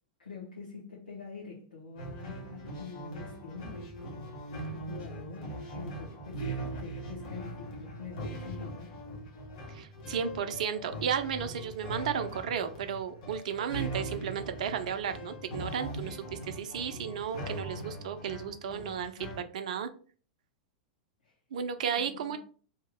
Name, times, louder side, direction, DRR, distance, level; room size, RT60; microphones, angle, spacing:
voice 1, 0.2-3.9 4.7-9.0 21.2-21.3 21.9-22.4, left 4 dB, 75° left, 1.0 m, -45 dB
sound 1, 2.0-19.4, right 1 dB, 50° left, 1.1 m, -41 dB
voice 2, 9.7-19.9 21.5-22.4, right 7 dB, 55° right, 0.5 m, -34 dB
2.9 x 2.6 x 3.5 m
figure-of-eight pair, 95°, 4 cm